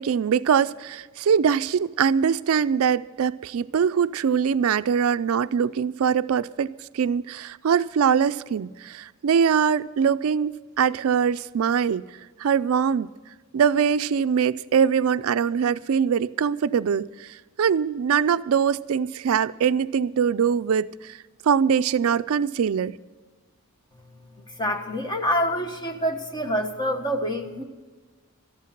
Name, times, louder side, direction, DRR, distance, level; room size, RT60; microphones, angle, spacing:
voice 1, 0.0-12.0 12.4-13.1 13.5-17.3 17.6-21.2 21.4-23.0, right 7 dB, 70° right, 0.4 m, -22 dB
voice 2, 24.6-27.6, equal, 20° left, 1.3 m, -26 dB
14.0 x 12.0 x 5.9 m
head